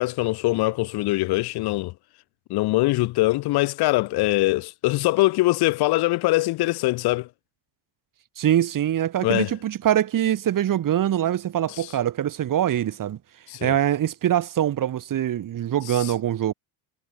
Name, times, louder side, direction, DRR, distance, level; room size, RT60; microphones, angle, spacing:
voice 1, 0.0-1.9 2.5-7.3 9.2-9.5 11.8-11.9 13.5-13.8 15.9-16.1, left 19 dB, 65° left, 1.2 m, -23 dB
voice 2, 8.4-13.2 13.6-16.5, right 11 dB, 50° right, 3.2 m, -23 dB
supercardioid pair, 95°, 42 cm